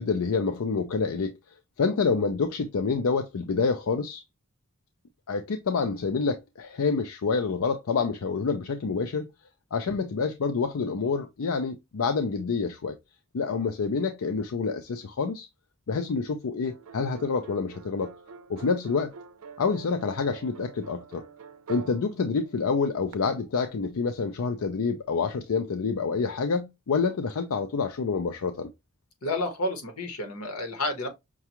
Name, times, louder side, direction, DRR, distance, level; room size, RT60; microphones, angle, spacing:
voice 1, 0.0-1.3 1.8-4.2 5.3-9.3 9.7-13.0 13.3-15.5 15.9-18.1 18.5-19.1 19.6-21.2 21.7-28.7, left 4 dB, 70° left, 0.5 m, -27 dB
sound 1, 16.6-23.1, right 5 dB, 80° right, 0.5 m, -46 dB
voice 2, 29.2-31.1, left 2 dB, 90° left, 1.2 m, -30 dB
5.8 x 2.3 x 2.9 m
head